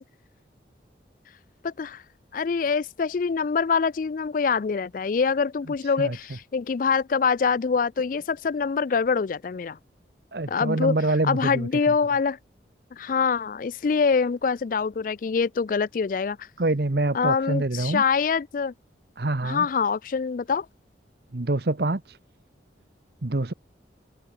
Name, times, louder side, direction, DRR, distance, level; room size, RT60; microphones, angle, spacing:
voice 1, 1.6-2.0 2.3-9.8 10.5-11.0 11.2-12.4 12.9-16.5 17.1-18.7 19.4-20.7, left 5 dB, 45° left, 0.3 m, -25 dB
voice 2, 5.8-6.2 10.3-11.7 16.6-18.0 19.2-19.7 21.3-22.2 23.2-23.5, right 2 dB, 55° right, 1.0 m, -26 dB
head